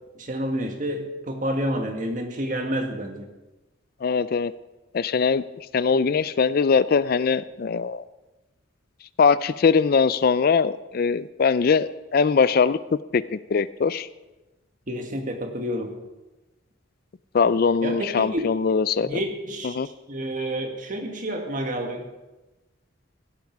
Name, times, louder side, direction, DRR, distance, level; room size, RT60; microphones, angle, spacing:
voice 1, 0.2-3.3 14.9-15.9 17.8-18.4 19.0-19.8 20.1-22.1, equal, 40° right, 4 dB, 1.8 m, -29 dB
voice 2, 4.0-4.5 4.9-5.4 5.7-8.0 9.2-12.8 13.1-14.1 17.3-19.1 19.7-19.9, left 5 dB, 50° left, 16 dB, 0.4 m, -21 dB
16.0 x 12.0 x 4.7 m, 1.1 s
head